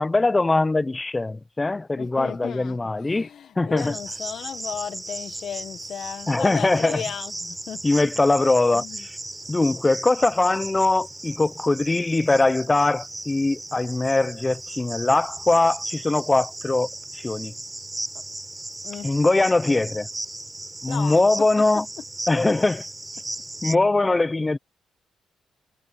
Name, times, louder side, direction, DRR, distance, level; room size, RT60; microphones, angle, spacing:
voice 1, 0.0-3.3 3.6-4.0 6.3-7.0 7.8-9.2 9.5-16.9 17.2-17.5 19.0-20.1 20.8-21.9 22.3-22.8 23.6-24.6, left 2 dB, 20° left, 1.1 m, -21 dB
voice 2, 2.0-7.8 8.8-9.0 18.8-19.1 20.9-21.2, left 8 dB, 65° left, 1.4 m, -35 dB
Cricket, 3.8-23.7, right 2 dB, 15° right, 4.1 m, -36 dB
cardioid pair, 90°, 0 cm